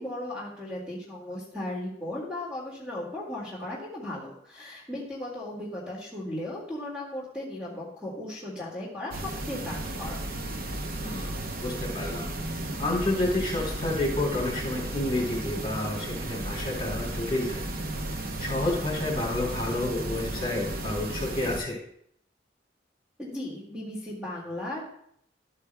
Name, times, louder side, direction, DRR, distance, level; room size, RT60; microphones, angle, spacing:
voice 1, 0.0-9.2 9.5-10.2 23.2-24.9, left 1 dB, 5° right, -6 dB, 1.9 m, -36 dB
sound 1, 9.1-21.6, right 1 dB, 55° right, 0.8 m, -34 dB
voice 2, 11.0-12.3 12.8-17.6 18.4-21.8, left 2 dB, 30° left, -2 dB, 3.6 m, -30 dB
12.5 x 8.2 x 2.2 m, 0.68 s
head